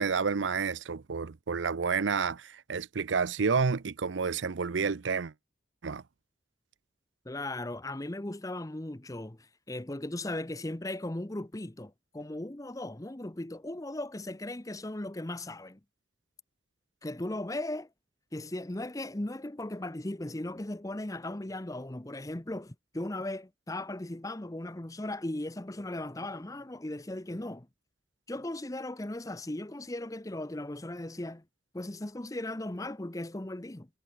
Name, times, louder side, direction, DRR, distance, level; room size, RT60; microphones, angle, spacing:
voice 1, 0.0-5.3 5.8-6.0, right 5 dB, 80° right, 0.6 m, -30 dB
voice 2, 7.2-15.8 17.0-17.9 18.3-27.7 28.3-31.4 31.7-33.9, left 1 dB, 20° left, 0.8 m, -37 dB
head